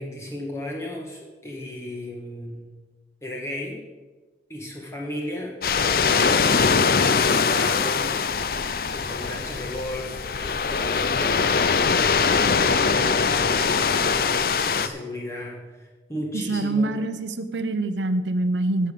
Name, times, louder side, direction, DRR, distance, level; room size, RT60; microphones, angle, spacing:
voice 1, 0.0-2.7 3.2-3.8 4.5-8.7 8.9-17.0, left 1 dB, 15° left, -2 dB, 1.7 m, -35 dB
sound 1, 5.6-14.9, left 5 dB, 55° left, 0.5 m, -22 dB
voice 2, 16.3-18.9, right 2 dB, 90° right, 10 dB, 0.7 m, -25 dB
16.0 x 5.6 x 6.7 m, 1.3 s
head